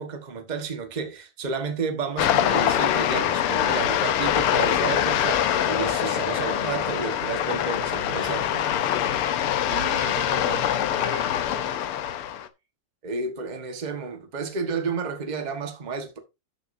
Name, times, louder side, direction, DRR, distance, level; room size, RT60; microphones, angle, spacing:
voice 1, 0.0-8.6 13.0-16.2, right 5 dB, 45° right, 0.5 m, -31 dB
sound 1, 2.2-12.5, left 10 dB, 70° left, 1.3 m, -24 dB
voice 2, 9.7-11.8, right 5 dB, 70° right, 4.1 m, -38 dB
12.5 x 6.5 x 2.7 m
omnidirectional pair, 3.4 m